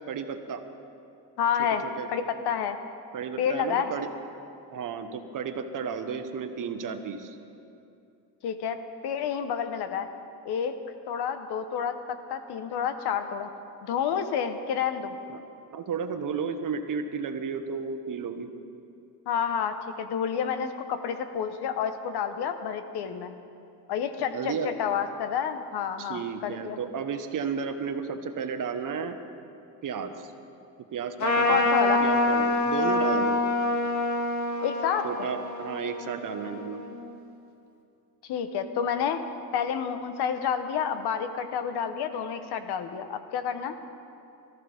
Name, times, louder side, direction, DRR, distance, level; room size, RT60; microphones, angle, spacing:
voice 1, 0.1-0.6 1.6-2.1 3.1-4.1 4.7-7.4 15.3-15.4 15.7-18.5 24.3-24.7 26.0-29.2 29.8-30.3 30.9-31.6 32.0-33.4 35.0-36.8, right 6 dB, 50° right, 7 dB, 1.3 m, -33 dB
voice 2, 1.4-2.8 3.4-3.9 8.4-10.1 10.4-10.8 11.1-13.5 13.8-15.2 19.3-23.3 23.9-26.8 31.5-32.0 34.6-35.1 38.2-39.2 39.5-43.7, left 7 dB, 70° left, 9 dB, 1.2 m, -29 dB
Trumpet, 31.2-37.0, left 2 dB, 45° left, 1.9 m, -26 dB
23.0 x 14.5 x 3.6 m, 2.6 s
cardioid pair, 105°, 41 cm